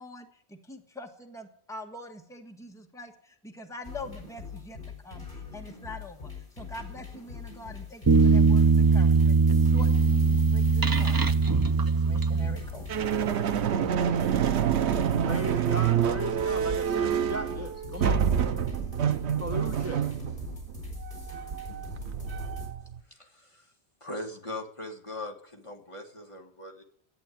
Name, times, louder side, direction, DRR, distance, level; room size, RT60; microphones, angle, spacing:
voice 1, 0.0-4.8 5.0-11.2 11.8-13.0, left 1 dB, 5° left, 3 dB, 1.3 m, -44 dB
sound 1, 3.8-22.7, left 5 dB, 55° left, 4.4 m, -43 dB
sound 2, 8.1-13.0, right 4 dB, 35° right, 0.4 m, -21 dB
sound 3, 12.9-23.0, right 8 dB, 90° right, 1.0 m, -27 dB
voice 2, 15.2-18.3 19.4-20.0, right 1 dB, 15° right, 3 dB, 0.9 m, -36 dB
voice 3, 23.1-23.7 24.0-26.8, left 1 dB, 30° left, 2 dB, 1.7 m, -40 dB
11.0 x 8.4 x 9.1 m, 0.63 s
omnidirectional pair, 1.1 m